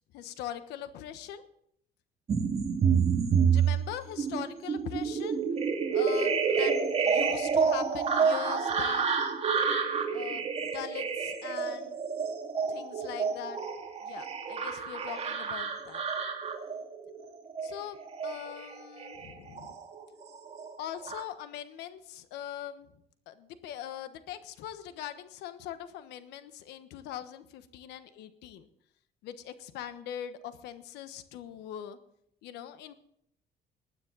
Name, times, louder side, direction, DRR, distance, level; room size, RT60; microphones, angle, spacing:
voice 1, 0.1-1.4 3.5-5.4 5.9-6.8 7.0-9.1 10.1-12.0 12.7-13.6 14.0-16.0 17.6-18.0 18.2-19.8 20.8-22.9 23.3-28.7 29.2-32.0 32.4-32.9, left 10 dB, 90° left, 11 dB, 1.2 m, -41 dB
sound 1, 2.3-20.0 20.4-21.2, right 6 dB, 40° right, 2.5 m, -29 dB
20.0 x 9.5 x 4.0 m, 0.71 s
cardioid pair, 110°, 17 cm